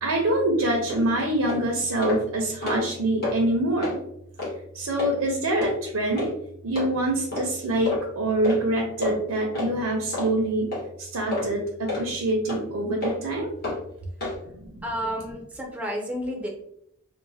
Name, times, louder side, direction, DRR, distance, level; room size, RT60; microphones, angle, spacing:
voice 1, 0.0-4.0 4.7-6.3 6.6-10.7 11.0-13.5 14.6-14.8, right 1 dB, 85° right, 0 dB, 0.5 m, -25 dB
sound 1, 0.9-1.0 1.4-1.6 2.0-2.2 2.5-2.9 3.2-3.4 3.8-4.0 4.4-4.5 5.0-5.1 5.6-5.7 6.2-6.3 6.7-6.9 7.3-7.5 7.8-8.0 8.4-8.6 9.0-9.1 9.5-9.7 10.1-10.3 10.7-10.8 11.3-11.5 11.9-12.0 12.5-12.6 13.0-13.2 13.6-13.8 14.2-14.4, left 3 dB, 45° left, 1.1 m, -29 dB
voice 2, 14.8-16.5, equal, 5° right, -1 dB, 0.4 m, -31 dB
3.0 x 2.1 x 2.6 m, 0.73 s
head